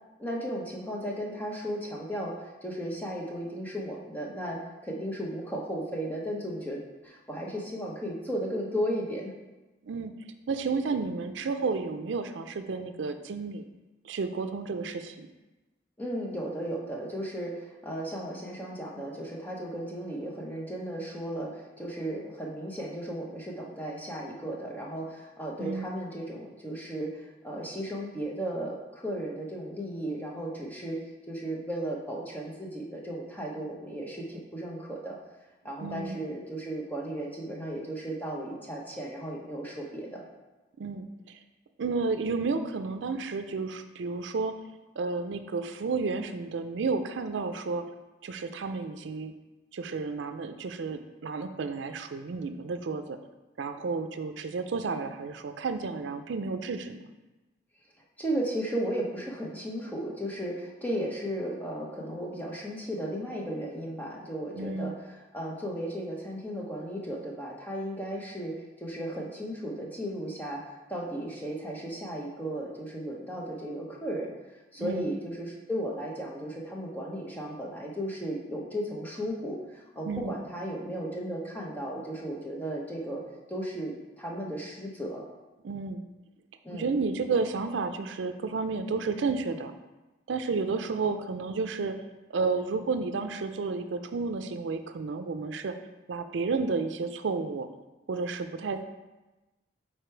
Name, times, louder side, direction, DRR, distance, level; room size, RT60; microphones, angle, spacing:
voice 1, 0.2-9.3 16.0-35.2 35.6-40.2 58.2-74.3 74.7-83.2 83.5-85.2 86.6-86.9, right 1 dB, 10° left, -3 dB, 0.8 m, -35 dB
voice 2, 10.5-13.7 14.0-15.3 25.6-25.9 35.8-36.2 40.8-41.4 41.8-44.5 45.0-47.8 48.2-49.3 49.7-53.2 53.6-57.0 64.6-64.9 74.8-75.1 80.0-80.4 85.6-86.0 86.7-89.7 90.3-92.0 92.3-95.7 96.1-97.7 98.1-98.8, right 4 dB, 85° right, 8 dB, 0.4 m, -31 dB
5.0 x 4.3 x 4.5 m, 1.1 s
head